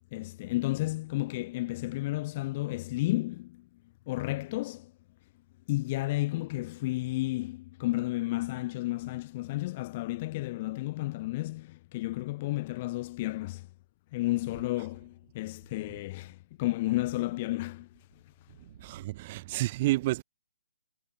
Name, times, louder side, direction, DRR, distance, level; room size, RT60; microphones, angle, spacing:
voice 1, 0.1-3.7 4.1-4.9 5.7-13.7 14.1-18.0, left 19 dB, 30° left, 1.0 m, -32 dB
voice 2, 18.8-20.2, right 18 dB, 30° right, 0.5 m, -29 dB
hypercardioid pair, 150°, 0 cm